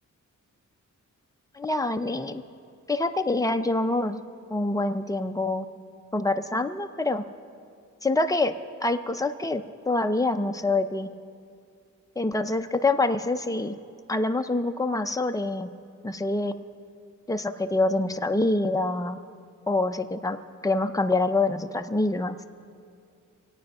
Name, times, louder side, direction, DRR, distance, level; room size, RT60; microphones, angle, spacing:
voice 1, 1.5-2.4 2.9-4.2 4.5-5.7 6.1-7.2 8.0-8.5 8.8-11.1 12.2-13.8 14.1-15.7 16.0-16.5 17.3-19.2 19.7-20.4 20.6-22.4, left 2 dB, 10° left, 7 dB, 0.5 m, -26 dB
26.0 x 8.7 x 5.4 m, 2.4 s
wide cardioid pair, 170°, 31 cm